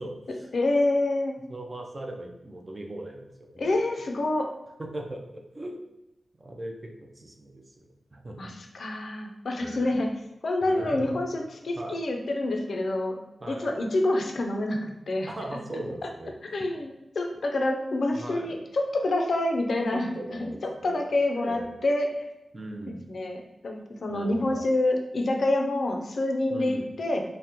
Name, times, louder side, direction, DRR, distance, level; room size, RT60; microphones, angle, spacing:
voice 1, 0.0-0.5 1.5-4.3 4.8-5.8 6.4-8.4 9.6-10.0 10.6-11.2 11.8-12.0 13.4-13.7 15.3-16.7 18.2-18.5 19.9-21.0 21.3-21.7 22.5-23.0 24.1-24.7 26.5-26.9, right 1 dB, 20° right, 2 dB, 0.3 m, -39 dB
voice 2, 0.5-1.4 3.6-4.5 8.4-10.1 10.4-13.2 13.5-15.3 16.0-16.1 16.5-16.9 17.2-20.5 20.8-22.1 23.1-27.2, left 2 dB, 55° left, 3 dB, 0.4 m, -27 dB
2.8 x 2.0 x 3.5 m, 0.92 s
wide cardioid pair, 165°, 0 cm